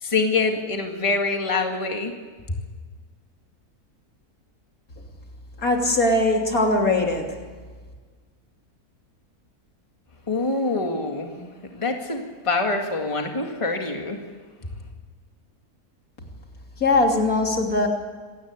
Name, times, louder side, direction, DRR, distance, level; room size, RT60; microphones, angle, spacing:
voice 1, 0.0-2.1 10.3-14.2, left 3 dB, 20° left, 3 dB, 2.1 m, -25 dB
voice 2, 5.6-7.4 16.8-17.9, left 2 dB, 65° left, 1 dB, 3.5 m, -21 dB
26.5 x 17.5 x 8.2 m, 1.5 s
omnidirectional pair, 1.6 m